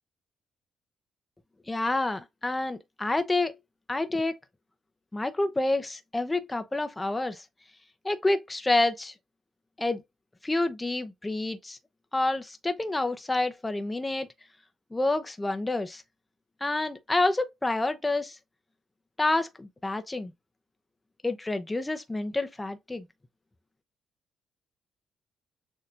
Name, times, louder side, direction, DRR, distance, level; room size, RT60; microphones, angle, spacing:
voice 1, 1.7-3.6 3.9-4.4 5.1-7.4 8.0-9.1 9.8-10.0 10.4-11.8 12.1-14.3 14.9-16.0 16.6-18.4 19.2-20.3 21.2-23.1, left 2 dB, 15° left, 0.7 m, -28 dB
6.7 x 2.8 x 2.5 m
cardioid pair, 90°, 0 cm